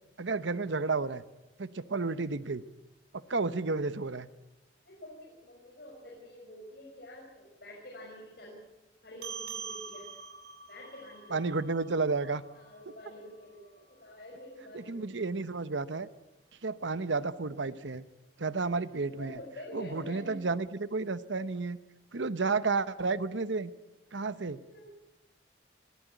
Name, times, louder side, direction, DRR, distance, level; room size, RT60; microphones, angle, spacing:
voice 1, 0.2-1.2 1.6-2.6 3.3-4.3 11.3-12.4 14.7-16.1 16.6-18.0 18.4-19.4 19.7-21.8 22.1-23.7 24.1-24.6, right 3 dB, 80° right, 14 dB, 0.9 m, -31 dB
voice 2, 4.9-8.6 9.0-10.1 10.7-11.4 12.5-15.1 19.0-20.4 24.6-24.9, left 1 dB, 55° left, -4 dB, 5.5 m, -47 dB
sound 1, 9.2-14.0, right 6 dB, 55° right, 2.6 m, -45 dB
22.0 x 15.0 x 9.2 m, 1.0 s
head